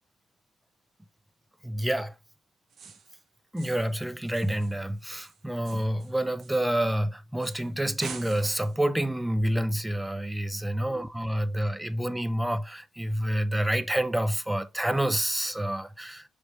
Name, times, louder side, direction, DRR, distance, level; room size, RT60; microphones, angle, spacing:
voice 1, 1.6-2.1 3.5-16.3, right 1 dB, 5° right, 0.4 m, -28 dB
sound 1, 2.7-3.2 3.6-4.0 4.3-7.0 7.4-7.7 8.0-8.8, right 6 dB, 65° right, 0.8 m, -46 dB
5.0 x 3.1 x 3.1 m
cardioid pair, 90°, 0 cm